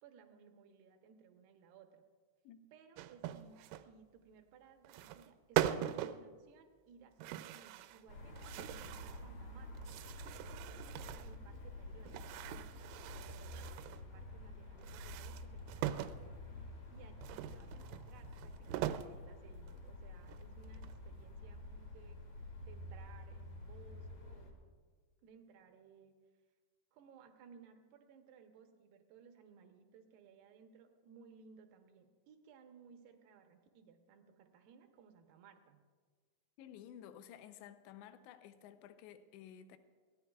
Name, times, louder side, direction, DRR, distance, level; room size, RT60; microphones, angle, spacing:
voice 1, 0.0-2.0 2.7-3.5 3.8-9.9 10.4-22.2 22.6-24.5 25.2-26.1 26.9-35.8, right 6 dB, 75° right, 2.6 m, -61 dB
sound 1, 3.0-3.9 4.8-5.3 5.6-6.2 7.2-8.0 8.4-9.2 9.7-11.4 12.0-14.0 14.8-16.2 17.2-19.1 19.7-19.8 20.2-21.1, right 13 dB, 90° right, 3.2 m, -41 dB
sound 2, 8.1-24.5, left 1 dB, 50° left, 2.1 m, -49 dB
voice 2, 36.6-39.8, left 10 dB, 80° left, 2.7 m, -54 dB
22.5 x 17.0 x 2.4 m
omnidirectional pair, 5.7 m